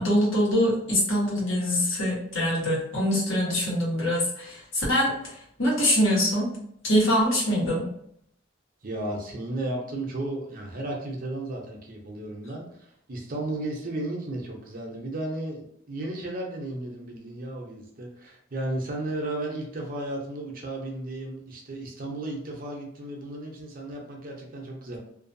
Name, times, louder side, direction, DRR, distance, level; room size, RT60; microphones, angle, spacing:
voice 1, 0.0-5.1 5.6-6.5 6.8-7.9, equal, 85° left, -5 dB, 1.2 m, -24 dB
voice 2, 8.8-25.0, right 1 dB, 50° right, 0 dB, 0.6 m, -34 dB
2.6 x 2.3 x 2.6 m, 0.70 s
head